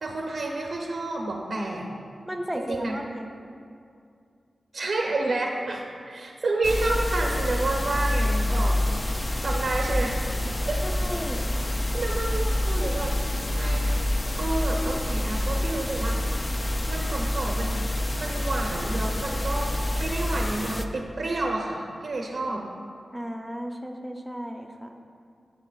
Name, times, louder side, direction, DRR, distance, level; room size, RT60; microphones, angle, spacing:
voice 1, 0.0-1.9 2.5-2.9 4.7-10.2 10.7-10.8 11.3-11.4 11.9-13.1 13.6-16.2 16.9-17.8 18.2-19.7 20.0-22.7, right 2 dB, 70° right, -1 dB, 0.8 m, -30 dB
voice 2, 2.3-3.3 10.8-11.5 23.1-25.0, equal, 5° right, 3 dB, 0.7 m, -34 dB
sound 1, 6.6-20.9, left 1 dB, 25° left, 0.4 m, -27 dB
Acoustic guitar / Strum, 12.9-16.3, right 1 dB, 75° left, 2.2 m, -50 dB
14.5 x 6.9 x 2.4 m, 2.4 s
wide cardioid pair, 105°, 0 cm